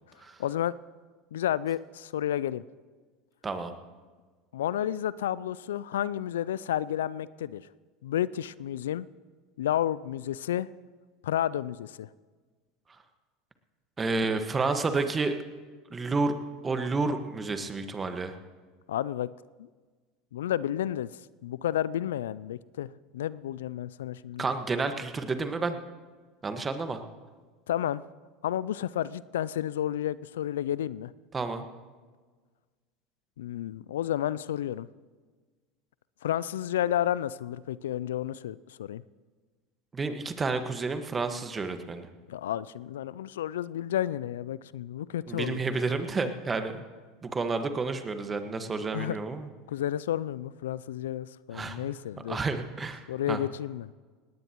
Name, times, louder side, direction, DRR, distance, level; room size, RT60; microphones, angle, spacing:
voice 1, 0.4-0.7 1.3-2.6 4.5-7.6 8.0-9.1 9.6-10.7 11.2-12.1 18.9-19.3 19.6-19.7 20.3-21.1 21.4-24.4 27.7-28.0 28.4-31.1 33.4-34.9 36.2-39.0 42.3-45.6 48.9-49.2 49.7-52.4 53.1-53.9, left 11 dB, 80° left, 20 dB, 0.3 m, -31 dB
voice 2, 3.4-3.7 14.0-15.4 15.9-16.3 16.6-18.4 24.4-25.8 26.4-27.0 31.3-31.6 39.9-42.1 45.3-46.8 47.2-49.5 51.5-51.9 52.3-53.4, right 3 dB, 25° right, 8 dB, 1.5 m, -30 dB
19.0 x 18.0 x 3.0 m, 1.4 s
hypercardioid pair, 80°, 0 cm